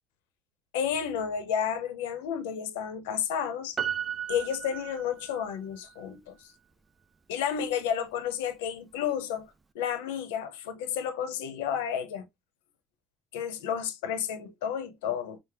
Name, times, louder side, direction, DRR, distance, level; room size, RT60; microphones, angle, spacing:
voice 1, 0.7-3.8 4.3-6.4 7.3-12.3 13.3-15.4, left 8 dB, 85° left, 0.7 m, -31 dB
Piano, 3.8-5.6 5.9-6.0, right 9 dB, 20° right, 0.4 m, -34 dB
5.0 x 2.1 x 3.4 m
supercardioid pair, 100°, 0 cm